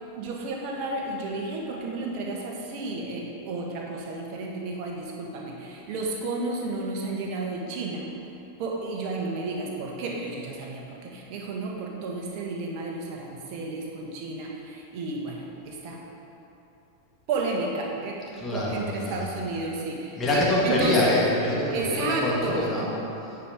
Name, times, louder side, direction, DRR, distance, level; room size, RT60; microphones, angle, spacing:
voice 1, 0.1-8.1 8.6-16.0 17.3-18.2 18.5-21.0 21.7-22.7, right 3 dB, 45° right, -1 dB, 1.5 m, -32 dB
voice 2, 18.3-19.3 20.2-23.4, left 1 dB, 20° left, -5 dB, 2.2 m, -25 dB
9.9 x 5.3 x 5.1 m, 2.9 s
figure-of-eight pair, 90°, 0 cm